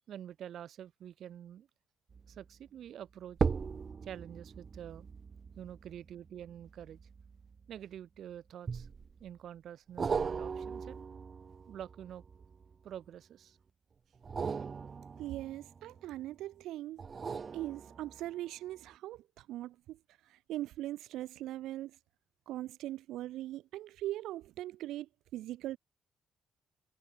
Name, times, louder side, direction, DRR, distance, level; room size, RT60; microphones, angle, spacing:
voice 1, 0.1-1.7 2.3-3.4 4.0-5.1 5.6-7.0 7.7-8.9 9.2-11.0 11.7-12.2 12.8-13.6, right 10 dB, 70° right, 4.8 m, -47 dB
sound 1, 2.1-2.4 3.3-8.0 8.7-9.3 10.0-13.0 14.2-16.2 17.0-18.4 18.9-19.0, right 5 dB, 40° right, 1.0 m, -39 dB
voice 2, 15.2-17.0 17.5-22.0 22.5-25.8, right 14 dB, 85° right, 3.7 m, -41 dB
cardioid pair, 90°, 0 cm